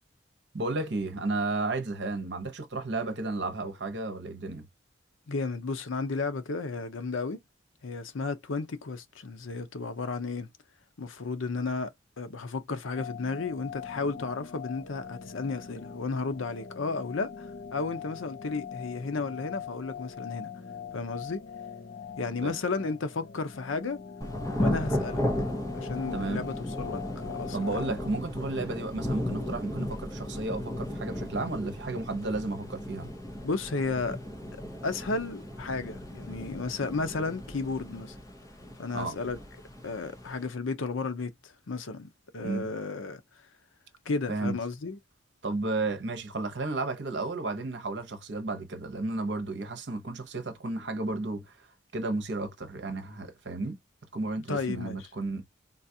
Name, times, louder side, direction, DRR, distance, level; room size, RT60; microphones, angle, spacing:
voice 1, 0.5-4.7 22.4-22.5 26.1-26.4 27.5-33.1 38.9-39.2 42.4-42.7 44.3-44.6 45.4-51.7 51.9-53.8 54.1-55.5, right 2 dB, 65° right, 0.9 m, -33 dB
voice 2, 5.3-7.4 7.8-10.5 11.0-20.5 20.9-21.4 22.2-24.0 24.6-25.2 25.7-27.7 33.4-34.2 34.8-38.2 38.8-39.4 39.8-43.2 44.1-45.0 54.5-55.1, left 3 dB, 90° left, 0.7 m, -33 dB
sound 1, 13.0-28.1, left 7 dB, 50° left, 0.4 m, -42 dB
Thunder / Rain, 24.2-40.5, left 1 dB, 15° left, 0.7 m, -35 dB
3.9 x 2.4 x 2.7 m
head